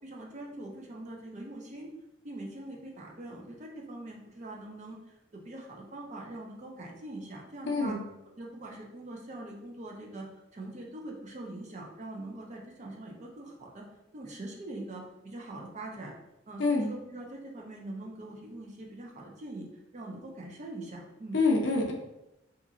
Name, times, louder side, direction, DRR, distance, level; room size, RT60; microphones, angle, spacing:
voice 1, 0.0-1.9 2.2-8.0 8.4-10.3 10.5-13.9 14.1-16.2 16.5-21.4, right 2 dB, 35° right, 0 dB, 0.5 m, -43 dB
voice 2, 7.7-8.0 16.6-16.9 21.3-21.9, left 3 dB, 60° left, 1 dB, 0.5 m, -26 dB
2.8 x 2.4 x 2.4 m, 0.89 s
head